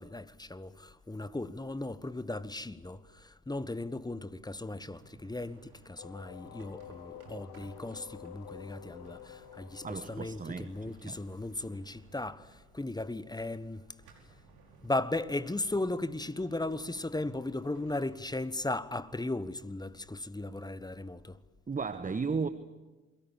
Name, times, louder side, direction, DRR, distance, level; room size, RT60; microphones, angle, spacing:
voice 1, 0.0-13.9 14.8-21.4, left 2 dB, 10° left, 1.2 m, -37 dB
sound 1, 4.7-18.6, right 4 dB, 60° right, 5.1 m, -59 dB
sound 2, 6.0-11.7, left 10 dB, 70° left, 1.4 m, -50 dB
voice 2, 9.8-11.2 21.7-22.5, right 5 dB, 20° right, 1.1 m, -35 dB
28.5 x 23.0 x 7.5 m
figure-of-eight pair, 50°, 42 cm